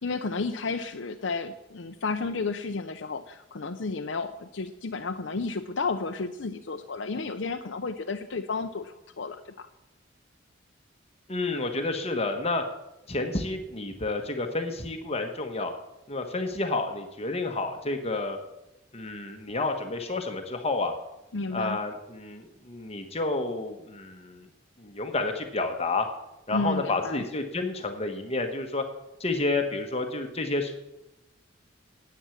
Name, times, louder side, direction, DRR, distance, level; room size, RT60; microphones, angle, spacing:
voice 1, 0.0-9.7 21.3-21.8 26.5-27.2, left 4 dB, 75° left, 5 dB, 0.7 m, -32 dB
voice 2, 11.3-12.6 13.1-15.7 16.1-18.4 18.9-20.9 21.5-24.5 24.8-26.1 26.5-28.8 29.2-30.8, left 2 dB, 35° left, 4 dB, 1.3 m, -30 dB
11.0 x 8.8 x 7.2 m, 0.95 s
head